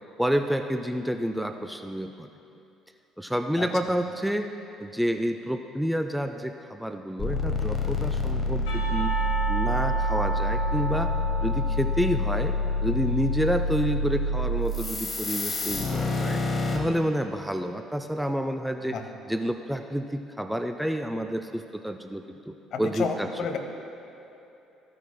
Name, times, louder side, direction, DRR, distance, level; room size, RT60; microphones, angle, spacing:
voice 1, 0.2-2.3 3.2-4.5 4.8-9.1 9.5-11.1 11.4-12.5 12.8-16.4 16.7-19.0 19.3-23.3, equal, ahead, 7 dB, 0.4 m, -29 dB
sound 1, 7.2-16.8, left 2 dB, 30° left, 1.2 m, -27 dB
Percussion, 8.7-13.5, right 2 dB, 70° left, 1.6 m, -34 dB
voice 2, 22.7-23.6, left 5 dB, 50° left, 5 dB, 0.8 m, -30 dB
14.0 x 9.7 x 2.2 m, 2.8 s
figure-of-eight pair, 50°, 0 cm